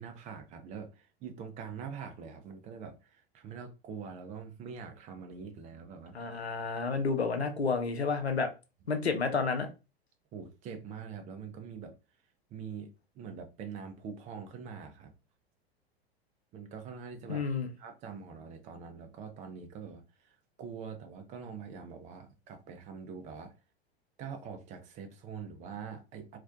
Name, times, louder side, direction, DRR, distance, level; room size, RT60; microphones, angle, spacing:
voice 1, 0.0-6.1 10.3-11.9 12.5-12.9 13.2-15.1 16.5-17.4 17.8-20.0 20.6-23.5 24.2-26.4, right 6 dB, 25° right, 0.4 m, -44 dB
voice 2, 6.1-8.5 8.9-9.7 17.3-17.7, left 4 dB, 90° left, 0.5 m, -30 dB
2.4 x 2.1 x 2.4 m
figure-of-eight pair, 90°, 31 cm